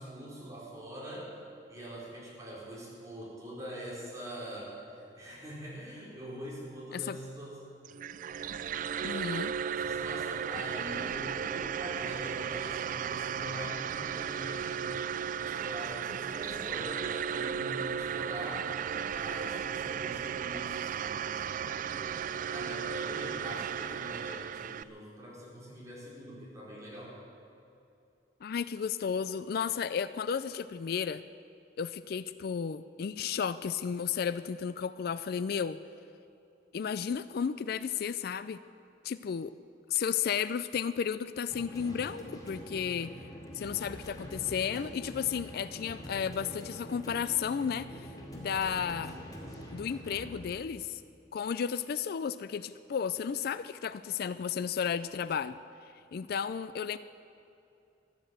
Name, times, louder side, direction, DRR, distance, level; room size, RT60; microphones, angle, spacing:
voice 1, 0.0-1.3 1.7-7.7 9.3-15.1 15.4-18.8 19.1-22.2 22.5-27.2, equal, 20° right, -7 dB, 4.9 m, -43 dB
sound 1, 7.9-24.8, right 8 dB, 45° right, 0.3 m, -35 dB
voice 2, 9.0-9.5 28.4-31.2 31.8-35.8 36.7-38.6 39.0-39.5 39.9-43.3 43.5-49.2 49.7-51.0 51.3-55.6 56.1-57.0, left 7 dB, 55° left, 14 dB, 0.4 m, -33 dB
sound 2, 41.5-50.5, equal, 20° left, 2.6 m, -45 dB
14.5 x 11.5 x 7.8 m, 2.5 s
head